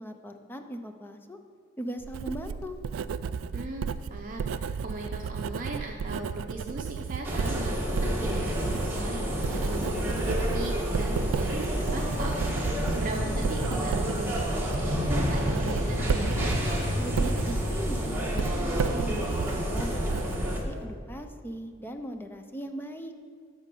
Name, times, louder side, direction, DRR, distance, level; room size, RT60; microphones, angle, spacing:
voice 1, 0.0-1.4 1.8-2.8 17.0-23.1, equal, 10° left, 6 dB, 0.5 m, -39 dB
Writing, 2.0-20.8, right 6 dB, 85° right, 0.3 m, -34 dB
voice 2, 3.5-16.6, right 2 dB, 45° right, 0 dB, 0.7 m, -38 dB
sound 1, 7.2-20.6, equal, 10° right, 1.6 m, -29 dB
13.0 x 5.1 x 5.3 m, 2.1 s
head